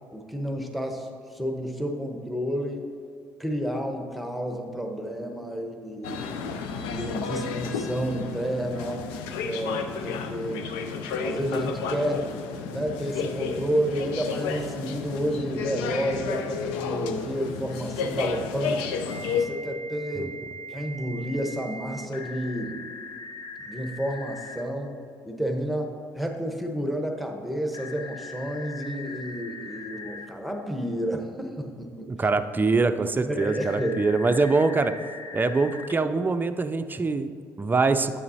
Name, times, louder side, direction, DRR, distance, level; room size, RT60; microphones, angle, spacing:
voice 1, 0.1-2.9 3.4-6.4 6.9-9.0 9.4-10.7 11.2-12.3 12.7-18.9 19.3-20.4 20.7-22.8 23.6-25.0 25.3-32.1 33.2-33.9, equal, ahead, 3 dB, 1.1 m, -30 dB
sound 1, 6.0-19.5, left 5 dB, 75° left, 0.5 m, -32 dB
Telephone, 16.5-17.2 19.1-24.6 27.7-30.3 33.4-35.9, left 3 dB, 40° left, 0.8 m, -39 dB
voice 2, 32.1-34.9 35.3-38.2, right 3 dB, 20° right, 9 dB, 0.5 m, -24 dB
9.4 x 7.6 x 2.8 m, 2.3 s
hypercardioid pair, 55°, 9 cm